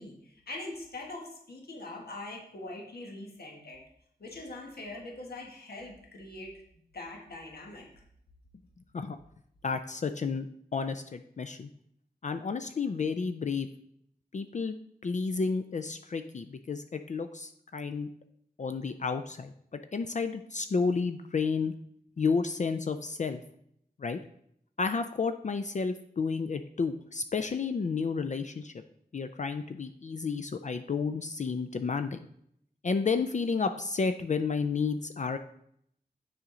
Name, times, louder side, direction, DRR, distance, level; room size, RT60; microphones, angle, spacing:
voice 1, 0.0-3.8 4.2-6.5 6.9-7.8, left 2 dB, 75° left, 0 dB, 1.4 m, -42 dB
voice 2, 9.6-10.5 10.7-11.7 12.2-13.7 14.3-14.8 15.0-18.1 18.6-21.7 22.2-23.4 24.0-24.2 24.8-28.7 29.1-32.2 32.8-35.4, left 5 dB, 50° left, 8 dB, 0.4 m, -31 dB
7.1 x 4.9 x 3.8 m, 0.70 s
wide cardioid pair, 70°, 16 cm